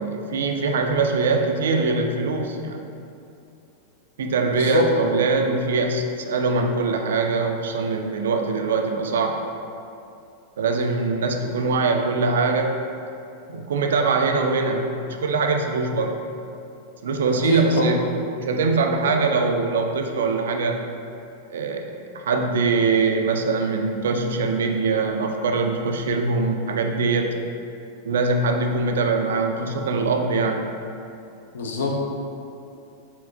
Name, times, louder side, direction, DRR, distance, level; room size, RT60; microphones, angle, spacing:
voice 1, 0.0-2.8 4.2-9.4 10.6-12.8 13.5-16.2 17.0-18.0 18.4-20.8 21.5-21.9 22.1-27.3 28.0-30.6, right 3 dB, 60° right, 4 dB, 0.3 m, -22 dB
voice 2, 4.5-4.9 17.4-17.9 31.5-32.0, equal, 65° left, 0 dB, 0.5 m, -23 dB
4.4 x 3.5 x 2.4 m, 2.6 s
figure-of-eight pair, 90°, 0 cm